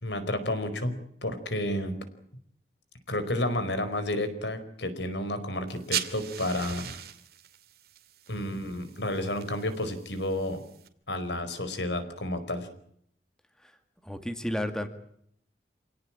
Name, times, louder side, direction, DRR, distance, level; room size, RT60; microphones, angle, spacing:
voice 1, 0.0-1.9 3.1-7.0 8.3-10.6 11.1-12.7, left 1 dB, 80° left, 11 dB, 4.8 m, -31 dB
sound 1, 5.7-10.9, right 10 dB, 60° right, 2.6 m, -39 dB
voice 2, 14.0-14.9, left 1 dB, 5° left, 8 dB, 2.2 m, -32 dB
28.0 x 18.0 x 8.8 m, 0.70 s
head